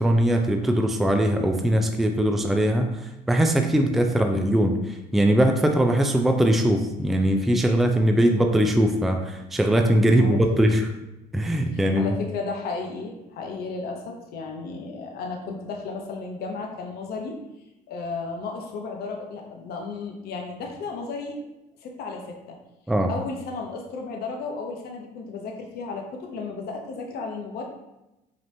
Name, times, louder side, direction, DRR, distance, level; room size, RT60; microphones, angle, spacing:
voice 1, 0.0-10.9 11.3-12.1 22.9-23.1, right 1 dB, ahead, 4 dB, 0.3 m, -21 dB
voice 2, 10.1-10.6 11.7-17.4 17.9-21.4 21.8-22.6 23.1-27.6, left 4 dB, 65° left, 1 dB, 0.7 m, -34 dB
5.1 x 2.9 x 2.7 m, 0.94 s
cardioid pair, 110°, 17 cm